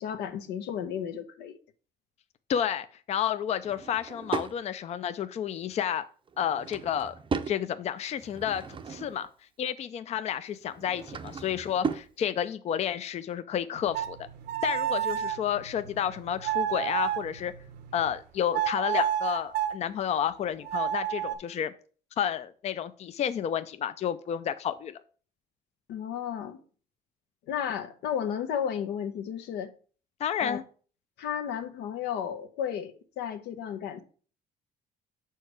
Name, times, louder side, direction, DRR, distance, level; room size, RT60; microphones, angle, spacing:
voice 1, 0.0-1.5 25.9-26.6 27.5-29.7 30.4-30.6 31.2-34.0, left 8 dB, 85° left, 0.9 m, -33 dB
voice 2, 2.5-6.0 6.4-7.2 7.5-9.3 9.6-14.2 14.6-17.5 17.9-21.7 22.2-25.0 30.2-30.6, left 9 dB, 40° left, 0.4 m, -30 dB
Drawer open or close / Wood, 3.6-4.6 6.3-7.6 8.1-9.3 10.6-12.1, right 5 dB, 30° right, 0.6 m, -36 dB
sound 1, 13.8-18.2 18.5-19.8 20.6-21.4, right 11 dB, 80° right, 0.9 m, -31 dB
6.6 x 4.6 x 4.7 m
cardioid pair, 110°, 17 cm